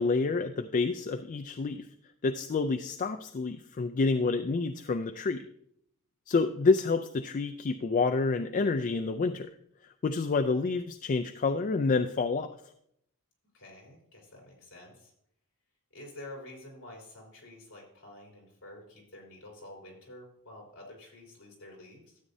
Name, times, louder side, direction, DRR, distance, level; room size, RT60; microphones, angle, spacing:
voice 1, 0.0-1.9 2.2-5.5 6.3-9.5 9.8-12.5, left 4 dB, 35° left, 7 dB, 0.4 m, -28 dB
voice 2, 13.5-15.1 15.9-22.2, left 1 dB, 60° left, -3 dB, 3.7 m, -49 dB
13.0 x 8.3 x 2.7 m, 0.73 s
head